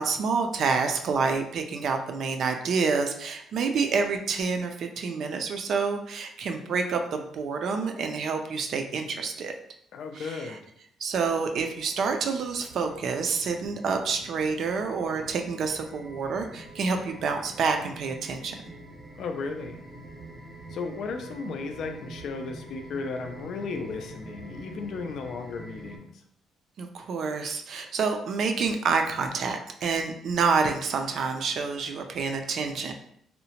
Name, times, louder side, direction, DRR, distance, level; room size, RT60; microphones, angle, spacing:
voice 1, 0.0-9.5 10.2-10.5 11.0-18.6 26.8-32.9, right 5 dB, 60° right, 5 dB, 0.3 m, -28 dB
voice 2, 9.9-10.6 19.2-19.8 20.7-26.2, left 4 dB, 65° left, 5 dB, 0.4 m, -35 dB
sound 1, 11.7-26.0, right 2 dB, 15° right, 0.6 m, -45 dB
2.8 x 2.1 x 2.8 m, 0.70 s
cardioid pair, 110°, 0 cm